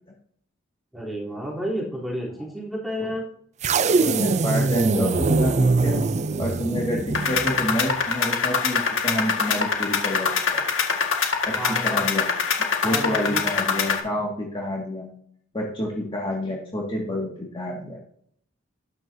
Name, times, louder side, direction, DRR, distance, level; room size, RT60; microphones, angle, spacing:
voice 1, 0.9-3.2 11.6-12.1 12.8-13.4, equal, ahead, -5 dB, 3.5 m, -31 dB
sound 1, 3.6-7.9, right 3 dB, 35° right, 0.4 m, -22 dB
voice 2, 4.0-6.0 6.4-10.6 11.5-11.6 11.8-12.3 12.8-15.1 15.5-18.0, left 1 dB, 25° left, -3 dB, 2.1 m, -28 dB
sound 2, 7.1-14.0, left 5 dB, 75° left, 1.9 m, -24 dB
12.5 x 10.0 x 2.8 m, 0.64 s
head